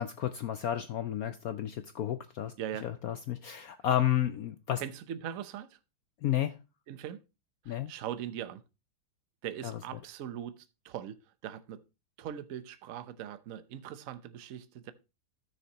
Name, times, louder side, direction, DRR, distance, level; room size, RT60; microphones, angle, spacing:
voice 1, 0.0-2.5 2.8-4.8 6.2-6.5 7.7-7.9 9.6-9.7, left 11 dB, 75° left, 0.8 m, -31 dB
voice 2, 2.6-2.9 4.8-5.8 6.9-7.2 7.6-8.6 9.4-11.8 12.2-14.9, right 10 dB, 60° right, 0.9 m, -41 dB
13.5 x 6.6 x 2.9 m
omnidirectional pair, 2.2 m